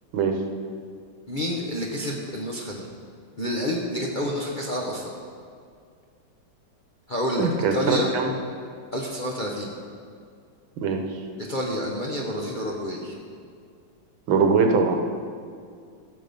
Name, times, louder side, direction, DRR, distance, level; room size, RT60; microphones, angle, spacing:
voice 1, 1.3-2.9 3.4-5.1 7.1-8.1 8.9-9.7 11.4-13.2, left 1 dB, 35° left, -2 dB, 0.8 m, -29 dB
voice 2, 7.4-8.3 10.8-11.2 14.3-15.0, right 5 dB, 85° right, 4 dB, 1.9 m, -22 dB
14.5 x 6.7 x 5.3 m, 2.2 s
omnidirectional pair, 2.2 m